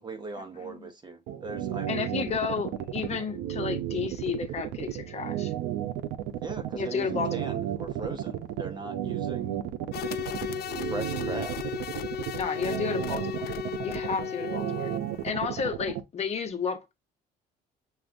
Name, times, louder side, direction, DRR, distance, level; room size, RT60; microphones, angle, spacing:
voice 1, 0.0-1.9 6.4-9.6 10.8-11.6, right 3 dB, 25° right, 0.8 m, -39 dB
sound 1, 1.3-16.0, right 11 dB, 85° right, 0.6 m, -33 dB
voice 2, 1.9-5.5 6.7-7.5 12.3-13.6 13.8-15.0 15.2-16.9, left 6 dB, 40° left, 1.0 m, -32 dB
sound 2, 9.9-15.3, left 9 dB, 65° left, 0.5 m, -35 dB
6.8 x 2.4 x 2.6 m
cardioid pair, 110°, 17 cm